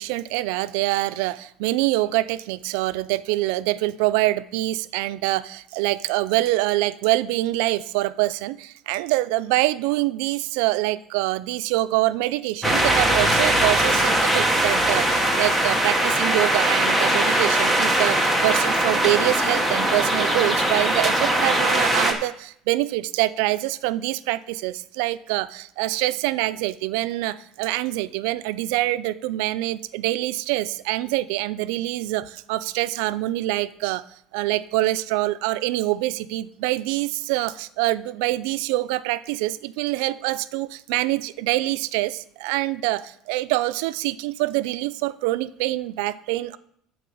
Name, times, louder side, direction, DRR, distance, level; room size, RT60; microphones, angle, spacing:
voice 1, 0.0-34.0 34.3-46.6, right 17 dB, 80° right, 15 dB, 0.4 m, -25 dB
sound 1, 12.6-22.1, right 1 dB, ahead, 1.0 m, -21 dB
11.0 x 4.2 x 7.6 m, 0.69 s
cardioid pair, 170°, 0 cm